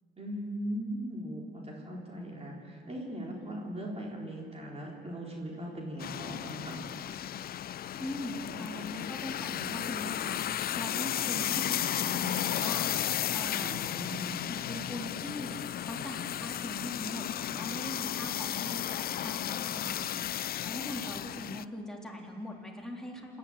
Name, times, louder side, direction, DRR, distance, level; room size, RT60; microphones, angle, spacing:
voice 1, 0.2-6.8 13.6-14.5, equal, 30° right, -2 dB, 4.0 m, -39 dB
sound 1, 6.0-21.7, left 11 dB, 50° left, 0.4 m, -34 dB
voice 2, 7.9-12.9 13.3-13.8 14.5-15.5 15.8-20.1 20.4-23.4, left 1 dB, 5° left, -1 dB, 3.6 m, -41 dB
27.5 x 11.0 x 9.0 m, 2.5 s
cardioid pair, 90°, 20 cm